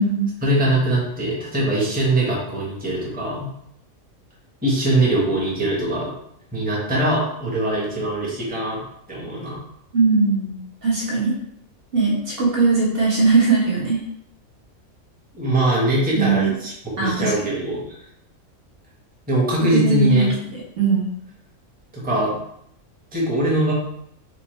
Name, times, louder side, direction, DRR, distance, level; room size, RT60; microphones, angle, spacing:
voice 1, 0.4-3.5 4.6-6.1 6.5-8.8 9.1-9.6 15.3-16.7 17.0-18.0 19.3-20.3 21.9-22.4 23.1-23.7, right 1 dB, 5° right, -5 dB, 1.0 m, -22 dB
voice 2, 9.9-11.3 11.9-14.0 16.1-16.5 17.0-17.5 19.7-21.1, right 4 dB, 45° right, -6 dB, 1.4 m, -20 dB
5.0 x 2.2 x 3.2 m, 0.73 s
omnidirectional pair, 1.4 m